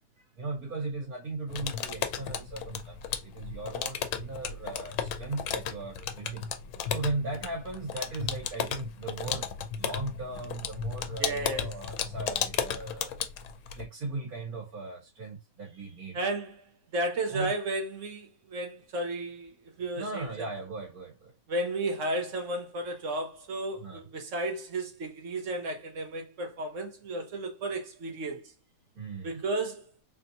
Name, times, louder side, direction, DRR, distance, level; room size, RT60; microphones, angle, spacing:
voice 1, 0.0-6.5 6.9-9.5 9.8-13.3 13.7-16.2 17.3-17.5 20.0-21.3 23.8-24.0 28.9-29.4, right 3 dB, 90° right, 1.8 m, -38 dB
sound 1, 1.5-13.9, left 8 dB, 90° left, 1.0 m, -34 dB
voice 2, 11.2-11.7 16.1-16.6 16.9-19.5 19.8-20.5 21.5-28.5 29.2-29.8, right 2 dB, 65° right, 1.2 m, -33 dB
3.4 x 2.7 x 2.6 m
omnidirectional pair, 1.5 m